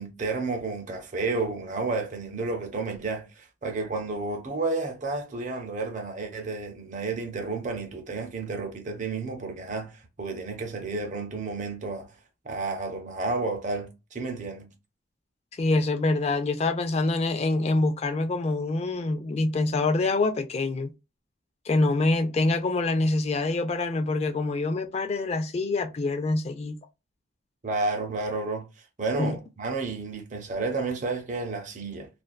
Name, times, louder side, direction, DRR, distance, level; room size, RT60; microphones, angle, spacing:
voice 1, 0.0-12.1 12.4-14.7 27.6-28.7 29.0-32.1, right 3 dB, 40° right, 0.6 m, -31 dB
voice 2, 15.6-20.9 21.7-26.8 29.2-29.3, left 2 dB, 35° left, 0.3 m, -25 dB
2.5 x 2.2 x 2.2 m
head